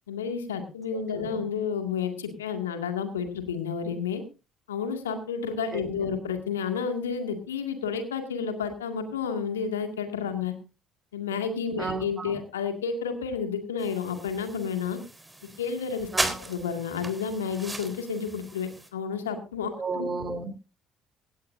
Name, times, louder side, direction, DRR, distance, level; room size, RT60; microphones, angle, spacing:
voice 1, 0.1-4.2 4.7-10.5 11.1-15.0 15.6-16.1 16.4-20.1, left 6 dB, 80° left, 6 dB, 2.1 m, -31 dB
voice 2, 0.9-1.4 5.7-6.2 11.8-12.4 16.1-16.4 19.7-20.5, right 4 dB, 30° right, 9 dB, 3.5 m, -34 dB
sound 1, 13.8-18.9, right 2 dB, 15° right, 3.9 m, -36 dB
17.5 x 16.5 x 2.6 m, 0.31 s
figure-of-eight pair, 50°, 0 cm